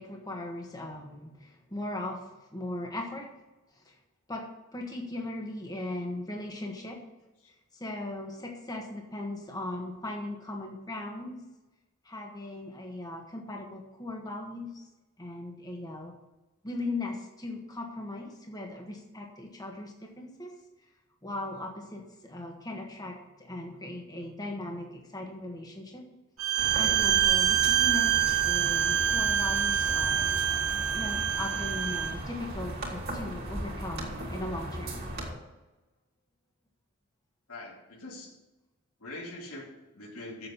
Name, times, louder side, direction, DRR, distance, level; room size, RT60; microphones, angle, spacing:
voice 1, 0.0-2.2 2.5-3.3 3.8-3.9 4.3-4.4 4.7-7.0 7.8-11.4 12.0-14.8 15.2-16.1 16.6-20.5 21.2-26.0 26.8-28.1 28.4-30.4 30.9-35.0, left 2 dB, 20° left, 1 dB, 1.5 m, -38 dB
Bowed string instrument, 26.4-32.1, right 10 dB, 85° right, 1.1 m, -26 dB
sound 1, 26.6-35.3, right 1 dB, 50° right, 2.6 m, -37 dB
voice 2, 37.5-38.3 39.0-40.5, left 2 dB, 90° left, -1 dB, 2.9 m, -43 dB
7.6 x 7.3 x 8.4 m, 1.1 s
head